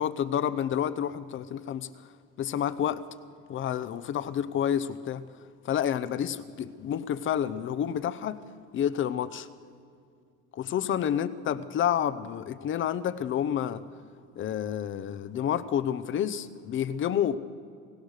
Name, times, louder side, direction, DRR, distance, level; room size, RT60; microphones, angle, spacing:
voice 1, 0.0-1.9 2.4-3.0 3.5-5.2 5.6-8.4 8.7-9.5 10.5-13.8 14.4-17.4, left 9 dB, 40° left, 14 dB, 0.8 m, -29 dB
28.0 x 16.5 x 6.6 m, 2.3 s
cardioid pair, 155°, 32 cm